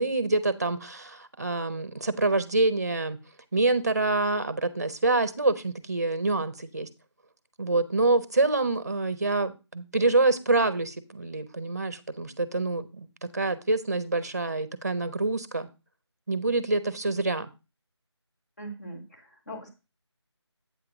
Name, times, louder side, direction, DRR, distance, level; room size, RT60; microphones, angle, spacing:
voice 1, 0.0-3.2 3.5-6.9 7.6-15.7 16.3-17.5, right 2 dB, 35° right, 14 dB, 0.7 m, -26 dB
voice 2, 18.6-19.7, right 1 dB, 35° left, 1 dB, 2.1 m, -41 dB
8.4 x 3.6 x 5.8 m, 0.28 s
figure-of-eight pair, 175°, 15 cm